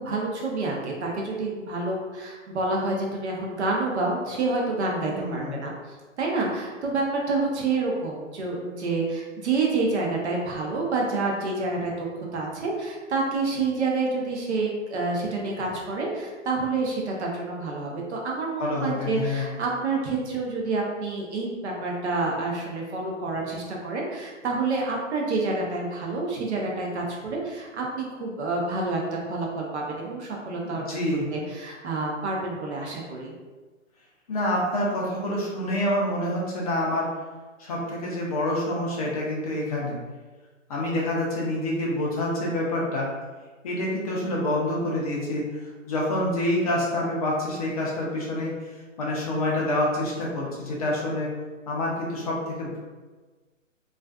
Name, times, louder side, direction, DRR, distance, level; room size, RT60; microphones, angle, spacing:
voice 1, 0.0-5.7 6.2-12.1 12.3-31.0 31.3-33.3, right 3 dB, 55° right, -1 dB, 0.7 m, -28 dB
voice 2, 5.0-5.5 18.6-19.5 30.6-31.3 34.3-37.1 37.6-40.0 40.7-43.1 43.6-48.5 49.0-51.3 51.7-52.8, left 1 dB, 30° left, -3 dB, 0.5 m, -27 dB
2.4 x 2.4 x 2.3 m, 1.3 s
hypercardioid pair, 140°, 40 cm